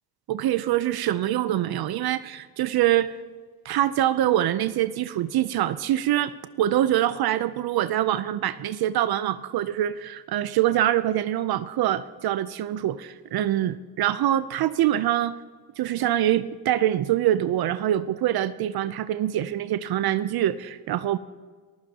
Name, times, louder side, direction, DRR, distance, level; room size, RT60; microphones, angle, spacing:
voice 1, 0.3-3.2 3.6-15.3 15.8-21.2, right 12 dB, 60° right, 14 dB, 0.6 m, -24 dB
27.0 x 14.5 x 2.9 m, 1.5 s
cardioid pair, 80°, 41 cm